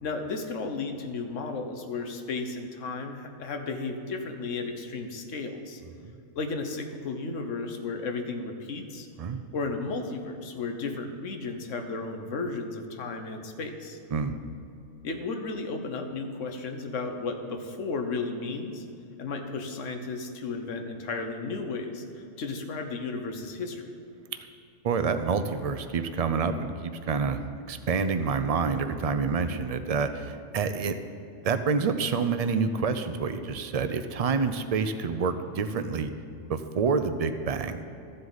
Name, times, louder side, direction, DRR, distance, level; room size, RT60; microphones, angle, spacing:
voice 1, 0.0-5.8 6.3-9.1 9.5-14.0 15.0-18.8 19.2-24.0, left 3 dB, 90° left, 5 dB, 1.3 m, -34 dB
voice 2, 24.8-31.0 31.4-36.1 36.5-37.8, right 5 dB, 50° right, 9 dB, 0.4 m, -28 dB
13.5 x 7.8 x 4.0 m, 2.7 s
omnidirectional pair, 1.2 m